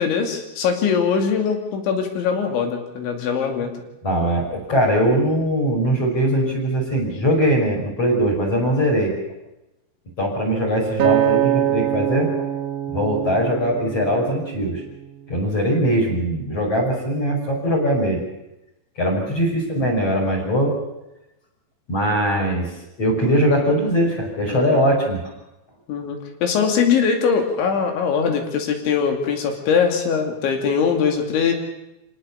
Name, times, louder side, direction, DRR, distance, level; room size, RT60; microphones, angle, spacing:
voice 1, 0.0-3.7 25.9-31.5, left 6 dB, 70° left, 4 dB, 4.8 m, -21 dB
voice 2, 4.0-9.1 10.2-12.3 12.9-14.8 15.3-18.2 19.0-20.7 21.9-22.7 23.0-25.2, equal, 30° left, 2 dB, 6.2 m, -21 dB
Acoustic guitar, 11.0-15.3 15.9-16.2, right 11 dB, 60° right, 2.8 m, -24 dB
27.0 x 18.0 x 7.0 m, 0.92 s
omnidirectional pair, 5.6 m